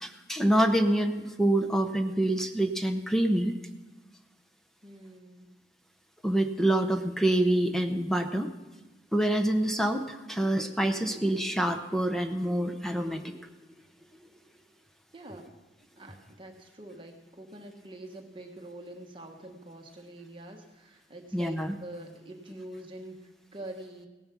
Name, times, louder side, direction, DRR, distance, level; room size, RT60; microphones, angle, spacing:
voice 1, 0.0-3.5 6.2-8.5 9.1-13.5 21.3-21.7, right 1 dB, ahead, 4 dB, 0.7 m, -26 dB
voice 2, 4.8-5.5 15.1-15.5 16.0-24.1, right 1 dB, 25° right, 2 dB, 1.2 m, -45 dB
17.5 x 9.2 x 6.1 m, 1.1 s
head